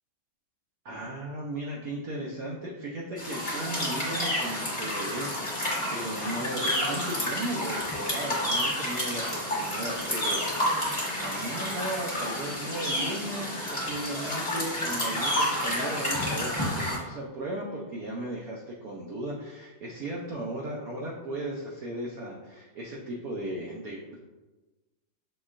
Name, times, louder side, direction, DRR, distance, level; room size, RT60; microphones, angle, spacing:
voice 1, 0.8-10.8 11.2-24.2, right 1 dB, 90° right, -2 dB, 0.7 m, -36 dB
sound 1, 3.2-17.0, left 1 dB, 20° left, 1.1 m, -30 dB
6.2 x 2.9 x 2.4 m, 1.2 s
omnidirectional pair, 2.2 m